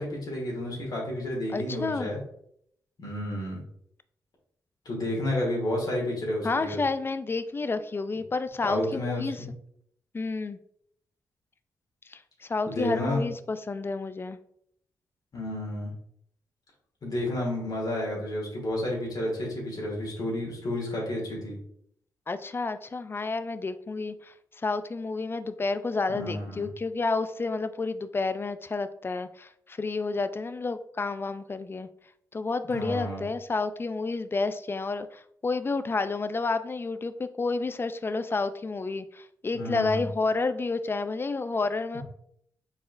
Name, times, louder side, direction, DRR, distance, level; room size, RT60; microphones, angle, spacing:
voice 1, 0.0-2.2 3.0-3.6 4.8-6.8 8.6-9.5 12.7-13.3 15.3-15.9 17.0-21.6 26.1-26.7 32.7-33.2 39.5-40.0 41.9-42.0, left 1 dB, 55° left, -3 dB, 1.4 m, -31 dB
voice 2, 1.5-2.1 6.4-9.4 10.1-10.6 12.1-14.4 22.3-24.3 24.6-31.9 32.3-42.0, left 3 dB, 30° left, 12 dB, 0.3 m, -30 dB
4.0 x 3.7 x 2.5 m, 0.69 s
cardioid pair, 65°, 8 cm